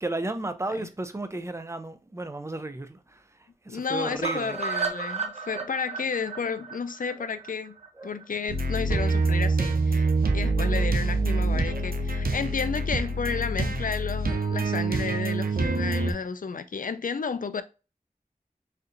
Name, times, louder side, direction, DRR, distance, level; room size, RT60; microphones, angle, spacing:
voice 1, 0.0-3.2 3.6-4.6 4.9-5.0 5.5-5.7 7.1-7.3 7.9-8.2 9.6-9.8 10.7-10.9 11.7-11.9, right 2 dB, 20° right, 0.5 m, -34 dB
voice 2, 3.7-7.7 8.0-10.1 10.3-17.6, left 5 dB, 70° left, 0.4 m, -32 dB
sound 1, 4.2-8.2 8.6-8.7 9.0-9.1 9.3-9.4, right 5 dB, 45° right, 0.7 m, -33 dB
sound 2, 8.5-16.1, right 3 dB, 90° right, 0.5 m, -25 dB
4.3 x 2.5 x 2.6 m
wide cardioid pair, 45°, 15 cm